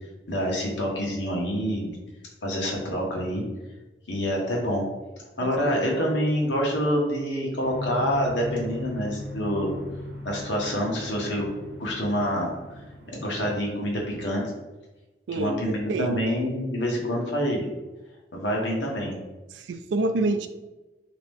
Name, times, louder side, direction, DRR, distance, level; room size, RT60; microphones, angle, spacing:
voice 1, 0.3-1.9 2.4-3.4 4.1-4.8 5.4-9.8 10.2-11.5 11.8-12.5 13.1-14.4 15.3-17.7 18.3-19.2, equal, 85° left, -1 dB, 1.0 m, -27 dB
voice 2, 5.4-5.7 15.3-16.2 19.7-20.5, right 2 dB, 85° right, 9 dB, 0.4 m, -27 dB
sound 1, 7.6-14.2, left 1 dB, 70° right, 0.9 m, -38 dB
3.1 x 2.9 x 3.3 m, 1.1 s
head